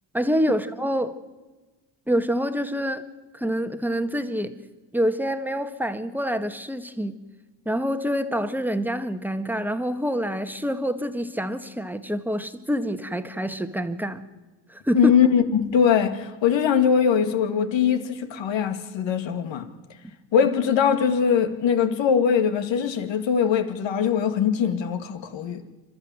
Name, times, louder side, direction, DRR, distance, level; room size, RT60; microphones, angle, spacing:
voice 1, 0.1-1.1 2.1-3.0 3.3-4.5 4.9-7.1 7.6-14.2 14.7-15.1, equal, 5° right, 1.6 m, -26 dB
voice 2, 14.9-19.7 20.3-25.6, left 7 dB, 65° left, 2.2 m, -21 dB
29.0 x 12.5 x 7.6 m
supercardioid pair, 80°, 49 cm